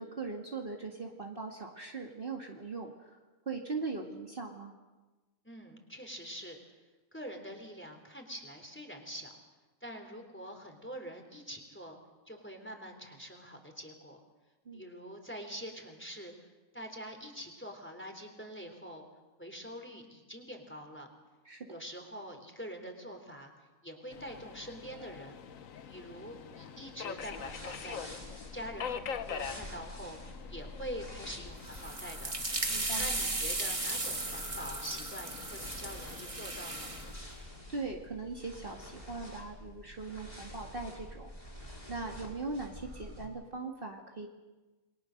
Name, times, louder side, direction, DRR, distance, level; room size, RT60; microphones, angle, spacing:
voice 1, 0.0-3.2 3.5-4.7 14.7-14.8 21.5-21.8 32.7-33.1 37.7-41.3 41.9-44.3, right 3 dB, 40° right, 1 dB, 2.2 m, -40 dB
voice 2, 5.4-6.6 7.1-9.3 9.8-12.0 12.3-14.2 14.7-16.5 16.7-19.1 19.4-21.1 21.7-23.5 23.8-25.4 25.9-28.0 28.5-30.2 30.5-32.3 33.0-37.0, equal, 10° left, 4 dB, 3.6 m, -45 dB
Subway metro underground, 24.1-37.1, left 7 dB, 70° left, 1.4 m, -45 dB
sound 1, 27.2-43.2, left 1 dB, 30° left, 5.5 m, -48 dB
sound 2, 31.7-37.1, right 2 dB, 25° right, 1.7 m, -36 dB
29.0 x 22.5 x 6.6 m, 1.2 s
omnidirectional pair, 1.5 m